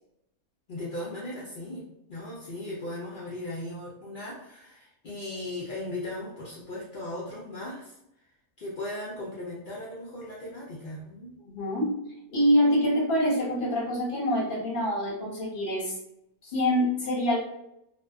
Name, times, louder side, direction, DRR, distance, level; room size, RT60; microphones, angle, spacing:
voice 1, 0.7-8.0 8.6-11.3, left 1 dB, 80° left, -7 dB, 0.4 m, -37 dB
voice 2, 11.5-12.0 12.3-16.0 16.4-17.4, equal, 45° left, -5 dB, 0.8 m, -25 dB
2.5 x 2.2 x 2.3 m, 0.81 s
omnidirectional pair, 1.6 m